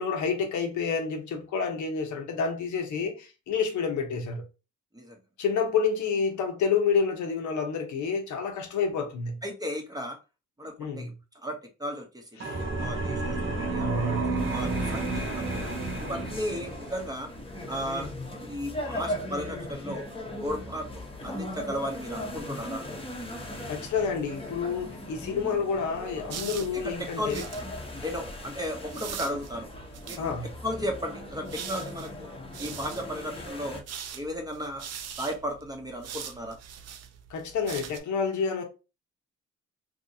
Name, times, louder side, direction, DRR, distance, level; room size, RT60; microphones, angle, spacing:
voice 1, 0.0-4.4 5.4-9.4 10.8-11.1 12.4-12.6 13.8-14.4 23.7-27.4 28.0-28.1 30.2-30.5 37.3-38.6, left 5 dB, 70° left, 0.9 m, -29 dB
voice 2, 9.4-10.2 10.6-11.1 11.4-12.5 12.8-13.9 14.3-15.6 16.0-17.3 17.7-18.1 18.4-20.0 20.4-22.8 26.7-27.4 28.0-29.7 30.0-32.3 32.6-33.8 34.1-34.9 35.2-36.6, equal, 10° right, 0.8 m, -35 dB
sound 1, 12.4-17.1, right 3 dB, 40° right, 0.9 m, -31 dB
sound 2, 14.4-33.8, left 1 dB, 20° left, 0.8 m, -39 dB
sound 3, 26.3-27.7 28.9-30.2 31.1-33.1 33.7-38.0, right 8 dB, 60° right, 0.5 m, -42 dB
2.8 x 2.7 x 2.7 m
cardioid pair, 90°, 30 cm